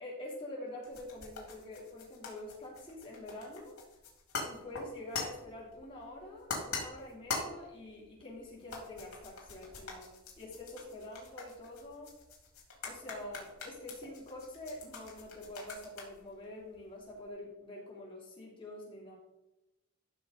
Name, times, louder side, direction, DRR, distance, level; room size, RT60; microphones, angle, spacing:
voice 1, 0.0-3.7 4.4-12.2 12.8-19.2, left 1 dB, 25° left, -5 dB, 3.5 m, -46 dB
sound 1, 0.8-17.3, left 4 dB, 80° left, 3.7 m, -44 dB
14.0 x 6.3 x 4.0 m, 0.96 s
head